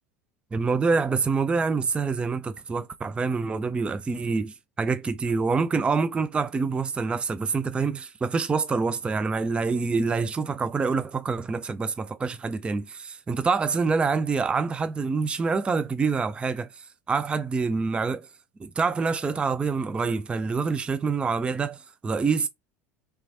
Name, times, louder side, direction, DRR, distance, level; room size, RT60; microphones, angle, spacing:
voice 1, 0.5-18.3 18.6-22.5, right 4 dB, 15° right, 0.3 m, -26 dB
3.3 x 3.0 x 2.6 m
figure-of-eight pair, 75°, 8 cm